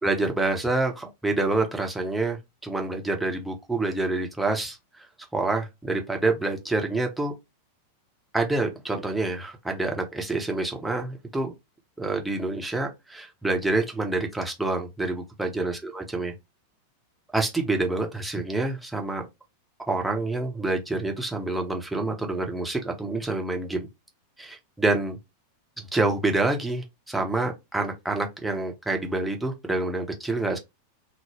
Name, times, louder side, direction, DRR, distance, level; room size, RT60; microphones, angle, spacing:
voice 1, 0.0-5.1 5.3-7.3 8.3-11.5 12.0-16.3 17.3-19.2 19.9-23.9 24.4-25.2 25.8-30.6, right 2 dB, 5° right, 0.8 m, -27 dB
3.8 x 2.1 x 2.9 m
figure-of-eight pair, 90°, 0 cm